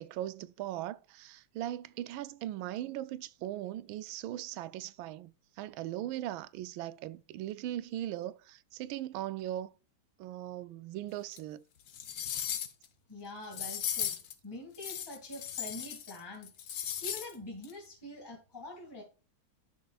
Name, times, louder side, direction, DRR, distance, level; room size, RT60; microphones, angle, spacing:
voice 1, 0.0-9.7 10.2-11.6 13.5-13.6, right 13 dB, 85° right, 1.4 m, -39 dB
sound 1, 11.3-11.4 11.9-12.9 13.5-14.3 14.8-16.2 16.4-17.3 17.6-17.7, left 9 dB, 60° left, 1.2 m, -37 dB
voice 2, 13.1-14.2 14.4-16.5 16.8-19.0, left 2 dB, 10° left, 2.2 m, -45 dB
11.5 x 6.3 x 2.4 m
omnidirectional pair, 2.2 m